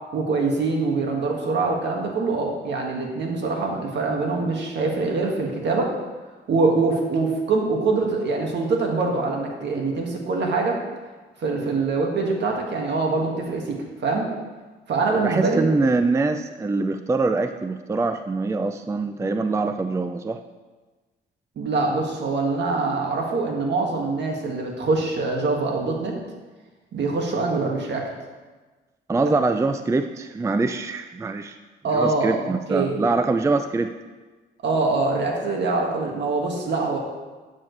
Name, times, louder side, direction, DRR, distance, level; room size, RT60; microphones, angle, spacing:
voice 1, 0.1-5.9 6.5-10.8 11.4-13.8 14.0-14.3 14.9-15.7 21.6-26.1 26.9-28.1 31.8-33.0 34.6-37.0, right 3 dB, 60° right, 1 dB, 1.9 m, -24 dB
voice 2, 15.2-20.4 29.1-31.6 31.9-33.9, right 3 dB, 15° right, 8 dB, 0.4 m, -24 dB
12.0 x 7.4 x 3.2 m, 1.3 s
cardioid pair, 90°, 20 cm